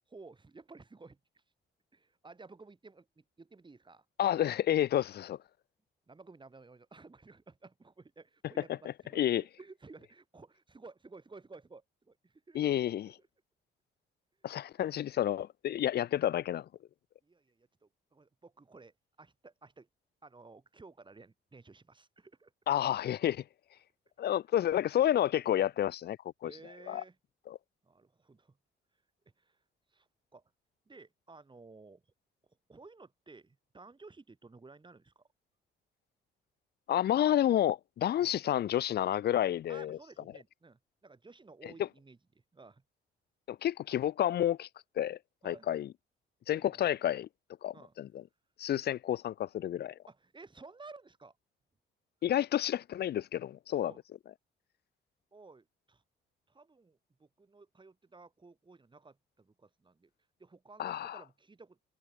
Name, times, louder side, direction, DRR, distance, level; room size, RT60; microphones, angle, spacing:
voice 1, 0.0-1.4 1.9-4.1 6.1-12.6 13.0-13.3 17.2-19.9 20.2-22.5 24.2-24.3 26.4-27.2 27.8-28.6 29.4-29.6 29.9-30.4 30.9-32.0 32.7-35.2 38.2-38.3 39.7-42.2 42.5-42.8 45.4-45.7 46.6-46.8 47.7-48.0 50.1-51.4 53.8-54.0 55.3-56.0 56.5-60.1 60.4-61.9, right 3 dB, 25° right, 5.5 m, -55 dB
voice 2, 4.2-5.4 9.1-9.4 12.5-13.1 14.4-16.7 22.7-23.4 24.2-26.2 26.4-26.5 26.9-27.0 27.5-27.6 36.9-40.0 41.6-41.7 43.5-44.7 45.0-45.2 45.4-45.9 46.5-47.3 47.6-48.1 48.6-49.9 52.2-53.9 60.8-61.2, left 11 dB, 55° left, 0.5 m, -30 dB
cardioid pair, 90°, 20 cm